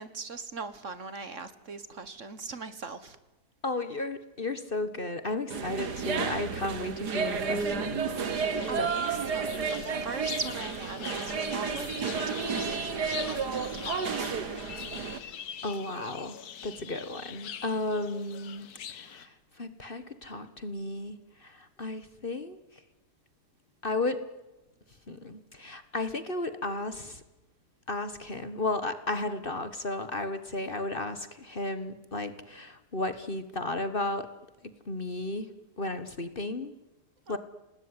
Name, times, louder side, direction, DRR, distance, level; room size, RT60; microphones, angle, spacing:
voice 1, 0.0-3.2 8.6-14.5 37.3-37.4, right 4 dB, 50° right, 13 dB, 1.7 m, -40 dB
voice 2, 3.6-8.1 8.8-8.9 15.2-15.3 15.6-22.6 23.8-24.2 25.1-27.2 27.9-34.3 34.8-35.5 35.8-36.7 37.3-37.4, left 2 dB, 35° left, 11 dB, 1.5 m, -34 dB
sound 1, 5.5-15.2, right 5 dB, 80° right, 2.2 m, -32 dB
sound 2, 8.3-19.3, left 9 dB, 70° left, 1.6 m, -43 dB
27.5 x 19.5 x 9.9 m, 1.0 s
omnidirectional pair, 1.7 m